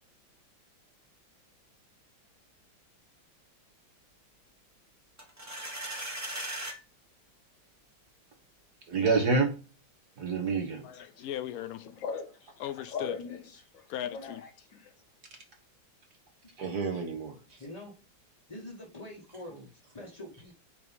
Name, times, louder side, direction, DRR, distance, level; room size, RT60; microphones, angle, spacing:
sound 1, 5.2-6.8, right 1 dB, 10° right, 1.2 m, -37 dB
voice 1, 8.9-9.6 10.2-10.9 15.3-15.4 16.6-17.6 19.5-19.6, right 4 dB, 55° right, 1.8 m, -28 dB
voice 2, 10.8-11.9 12.6-13.2 13.9-14.4, left 11 dB, 85° left, 0.8 m, -37 dB
voice 3, 12.0-14.9, left 6 dB, 70° left, 1.5 m, -40 dB
voice 4, 17.6-17.9 18.5-19.5 19.9-20.5, left 1 dB, 20° left, 1.1 m, -44 dB
5.4 x 4.7 x 5.2 m
omnidirectional pair, 2.2 m